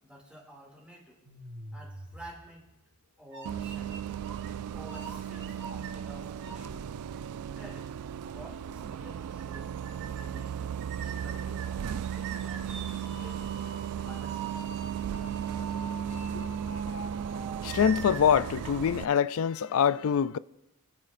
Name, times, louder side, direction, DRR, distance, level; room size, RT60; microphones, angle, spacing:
voice 1, 0.0-1.2 1.7-2.7 3.2-3.9 4.7-6.9 7.5-7.9 8.3-10.8 11.0-11.7 12.1-13.5 13.8-14.5, equal, 5° right, 2.5 m, -51 dB
sound 1, 1.2-2.8 3.3-4.5 4.8-6.7 7.2-7.3 8.3-8.4 8.6-8.7 9.0-9.1 9.4-9.6 9.8-10.4 10.8-19.5, right 4 dB, 55° right, 1.4 m, -44 dB
Bus, 3.4-19.0, right 9 dB, 85° right, 0.3 m, -36 dB
voice 2, 17.6-20.4, left 7 dB, 65° left, 0.3 m, -25 dB
24.0 x 9.1 x 2.6 m
head